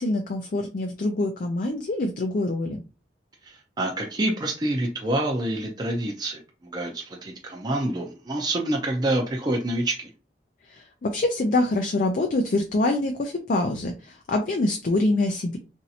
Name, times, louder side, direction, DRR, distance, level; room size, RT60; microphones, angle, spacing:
voice 1, 0.0-2.8 10.7-15.6, left 2 dB, 50° left, 3 dB, 0.4 m, -25 dB
voice 2, 3.4-10.1, right 1 dB, 25° right, 0 dB, 0.5 m, -27 dB
3.0 x 2.6 x 2.7 m, 0.32 s
head